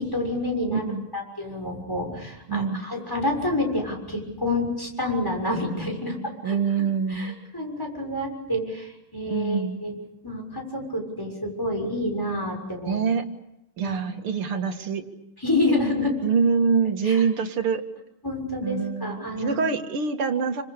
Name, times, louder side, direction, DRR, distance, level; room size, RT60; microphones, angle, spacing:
voice 1, 0.0-0.9 1.1-6.6 7.1-9.9 10.2-13.0 13.8-14.0 15.4-16.1 17.0-17.3 18.2-19.6, left 1 dB, 10° left, 0 dB, 6.5 m, -28 dB
voice 2, 0.7-1.1 2.5-2.8 6.4-7.4 9.3-9.8 12.8-13.2 13.8-15.0 16.2-17.8 18.6-20.6, right 6 dB, 80° right, 5 dB, 2.8 m, -25 dB
29.0 x 26.0 x 6.8 m, 0.85 s
omnidirectional pair, 2.4 m